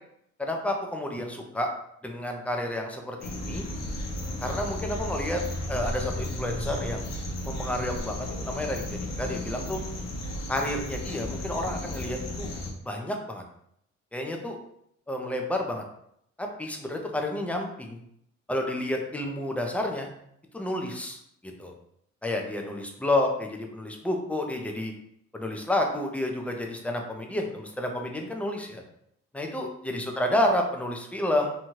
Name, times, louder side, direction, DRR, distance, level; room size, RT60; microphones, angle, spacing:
voice 1, 0.4-1.7 2.0-3.7 4.4-5.4 5.7-7.1 7.4-9.8 10.5-12.5 12.8-13.4 14.1-14.6 15.1-15.8 16.4-18.0 18.5-20.1 20.5-21.7 22.2-24.9 25.3-28.8 29.3-31.5, left 1 dB, 5° left, 2 dB, 0.5 m, -30 dB
sound 1, 3.2-12.7, left 1 dB, 60° left, 0.8 m, -34 dB
2.7 x 2.3 x 3.0 m, 0.72 s
cardioid pair, 90°, 30 cm